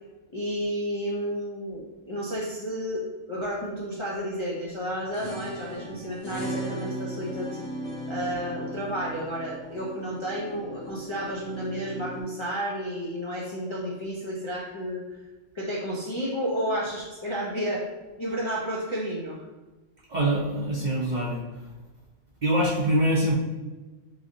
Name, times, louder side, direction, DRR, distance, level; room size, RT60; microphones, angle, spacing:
voice 1, 0.3-3.0 3.3-7.6 8.1-15.2 15.5-17.9 18.2-19.5, equal, 40° left, -7 dB, 0.4 m, -31 dB
sound 1, 4.9-12.2, right 1 dB, 60° left, 1.6 m, -38 dB
voice 2, 20.1-21.4 22.4-23.3, right 1 dB, 50° right, -5 dB, 0.6 m, -24 dB
3.8 x 3.3 x 2.6 m, 1.2 s
omnidirectional pair, 1.3 m